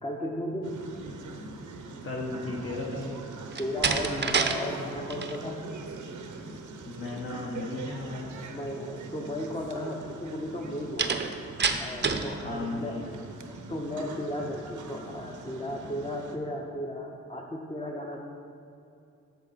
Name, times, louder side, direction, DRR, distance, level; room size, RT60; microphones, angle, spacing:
voice 1, 0.0-0.7 3.6-5.6 8.5-12.9 13.5-18.2, left 1 dB, 20° left, -1 dB, 0.7 m, -35 dB
sound 1, 0.6-16.4, right 3 dB, 90° right, 0.7 m, -42 dB
voice 2, 2.0-3.2 6.8-8.3 12.4-13.2, left 2 dB, 45° left, -2 dB, 1.0 m, -35 dB
Slam, 3.5-4.6 4.9-5.4 11.0-12.3, right 5 dB, 35° right, 0.5 m, -27 dB
8.2 x 6.6 x 4.1 m, 2.6 s
cardioid pair, 85°, 29 cm